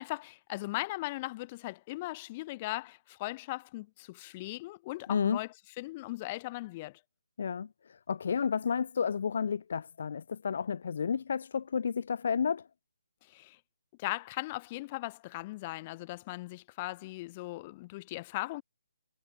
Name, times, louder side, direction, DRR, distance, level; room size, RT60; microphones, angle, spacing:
voice 1, 0.0-7.0 13.3-13.6 14.0-18.6, left 20 dB, 25° left, 7.0 m, -38 dB
voice 2, 5.1-5.4 7.4-7.7 8.1-12.6, left 6 dB, 50° left, 4.3 m, -31 dB
figure-of-eight pair, 145°, 0 cm